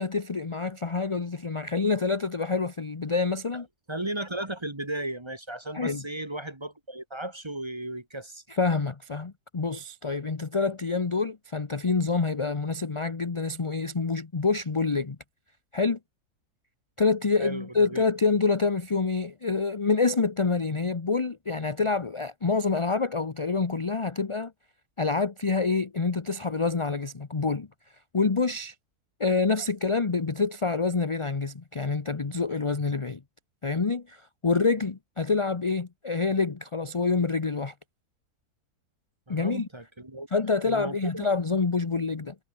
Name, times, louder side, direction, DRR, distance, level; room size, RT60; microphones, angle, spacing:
voice 1, 0.0-3.7 5.7-6.0 8.5-15.2 15.7-16.0 17.0-24.5 25.0-27.7 28.1-28.7 29.2-33.2 33.6-37.7 39.3-39.7 40.3-42.4, left 4 dB, 25° left, 0.7 m, -27 dB
voice 2, 3.9-8.4 17.4-18.0 39.3-40.3 40.6-41.3, right 1 dB, 15° right, 1.7 m, -35 dB
omnidirectional pair, 1.7 m